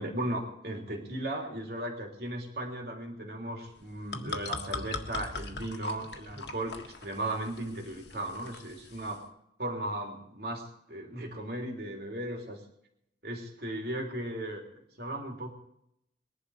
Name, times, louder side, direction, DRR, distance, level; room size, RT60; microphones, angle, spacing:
voice 1, 0.0-9.3 9.6-12.6 13.2-15.5, right 1 dB, 60° right, 1 dB, 3.5 m, -36 dB
sound 1, 3.8-9.2, left 3 dB, 70° left, 1.6 m, -41 dB
22.0 x 11.5 x 4.9 m, 0.76 s
head